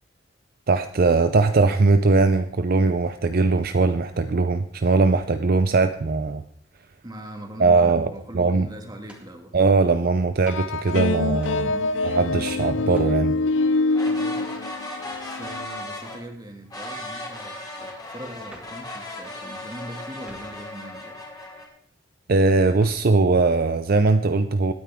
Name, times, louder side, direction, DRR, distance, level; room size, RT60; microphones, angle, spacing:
voice 1, 0.7-6.4 7.6-8.1 8.3-8.7 9.5-11.7 12.0-13.3 22.3-24.7, right 3 dB, 50° right, 9 dB, 0.6 m, -20 dB
voice 2, 7.0-9.5 11.6-12.0 14.1-14.5 15.2-21.2 21.5-21.6, right 1 dB, 20° right, 3 dB, 2.2 m, -40 dB
sound 1, 9.1-9.4 10.5-10.7 11.4-11.7 12.9-13.2 15.4-15.7 18.5-18.9 20.2-20.6 22.8-23.2, equal, 5° right, 2.0 m, -49 dB
sound 2, 10.5-15.6, left 3 dB, 80° left, 0.5 m, -25 dB
sound 3, 13.9-16.2 16.7-21.7, left 1 dB, 20° left, 3.2 m, -37 dB
21.0 x 9.5 x 3.6 m, 0.64 s
head